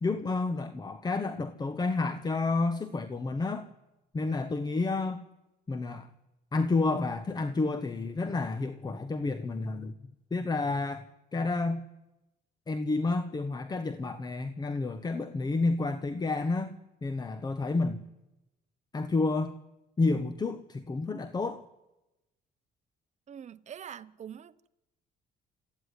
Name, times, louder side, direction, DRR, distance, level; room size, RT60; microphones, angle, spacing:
voice 1, 0.0-3.7 4.1-5.2 5.7-6.1 6.5-9.9 10.3-11.1 11.3-11.8 12.7-16.7 17.0-18.0 18.9-19.6 20.0-21.6, left 3 dB, 25° left, 1.1 m, -30 dB
voice 2, 23.3-24.7, right 9 dB, 45° right, 0.9 m, -44 dB
29.0 x 14.5 x 9.8 m
cardioid pair, 110°, 17 cm